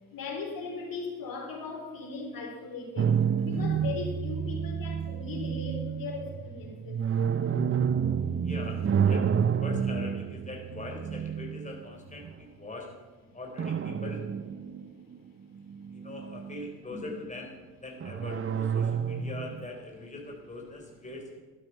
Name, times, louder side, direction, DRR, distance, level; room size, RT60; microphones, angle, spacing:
voice 1, 0.1-7.0 13.9-14.0 14.6-14.7 16.9-17.2 20.9-21.0, left 4 dB, 50° left, 2 dB, 4.2 m, -38 dB
sound 1, 3.0-12.3 13.6-15.2 15.6-16.7 18.0-19.7, right 7 dB, 30° right, 0.9 m, -29 dB
voice 2, 8.4-9.3 9.6-12.9 13.3-14.2 15.9-17.5 17.8-21.3, left 2 dB, 15° left, 1 dB, 3.9 m, -42 dB
12.5 x 12.0 x 5.7 m, 1.3 s
hypercardioid pair, 65°, 44 cm